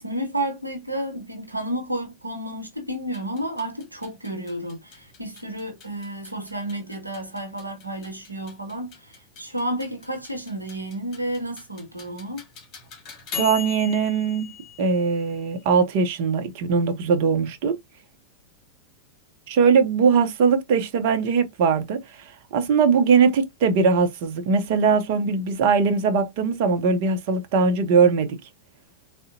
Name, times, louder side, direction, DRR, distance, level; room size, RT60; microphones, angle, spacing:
voice 1, 0.0-12.4, right 1 dB, 85° right, 0.8 m, -31 dB
sound 1, 3.0-15.8, left 8 dB, 35° left, 1.2 m, -41 dB
voice 2, 13.3-14.5 14.8-17.8 19.5-22.0 22.5-28.4, right 5 dB, 50° right, 0.6 m, -20 dB
3.7 x 2.1 x 2.5 m
figure-of-eight pair, 90°, 0 cm